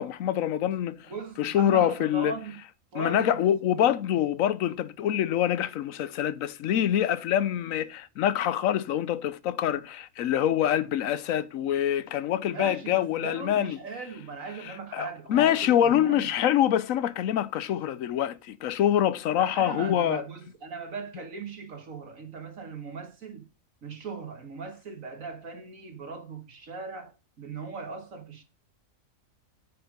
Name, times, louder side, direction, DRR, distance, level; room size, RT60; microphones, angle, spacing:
voice 1, 0.0-1.1 1.4-2.3 2.9-13.8 14.6-20.2, left 10 dB, 75° left, 1.0 m, -25 dB
voice 2, 1.1-2.6 2.9-3.4 3.8-3.9 12.5-16.3 19.4-23.5 23.8-28.4, right 4 dB, 70° right, 2.1 m, -39 dB
8.8 x 5.6 x 5.2 m
omnidirectional pair, 1.4 m